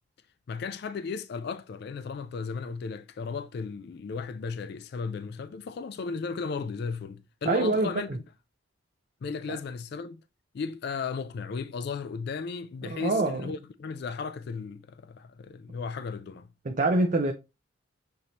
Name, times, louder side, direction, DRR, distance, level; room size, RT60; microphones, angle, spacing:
voice 1, 0.5-8.2 9.2-10.2 10.5-16.5, left 5 dB, 50° left, 0.3 m, -35 dB
voice 2, 7.5-7.9 9.5-9.6 12.9-13.4 16.7-17.3, right 2 dB, 40° right, 0.5 m, -25 dB
6.6 x 2.7 x 2.9 m
head